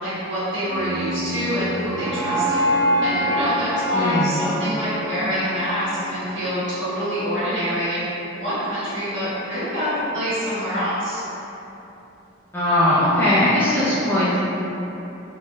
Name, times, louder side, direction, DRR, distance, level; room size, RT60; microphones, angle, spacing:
voice 1, 0.0-2.6 3.0-8.1 8.4-11.2, equal, 60° right, -13 dB, 1.3 m, -26 dB
sound 1, 0.6-6.7, equal, 15° right, 1.3 m, -25 dB
voice 2, 3.9-4.3 12.5-14.4, left 1 dB, 10° left, -12 dB, 0.4 m, -19 dB
3.3 x 2.5 x 2.3 m, 3.0 s
head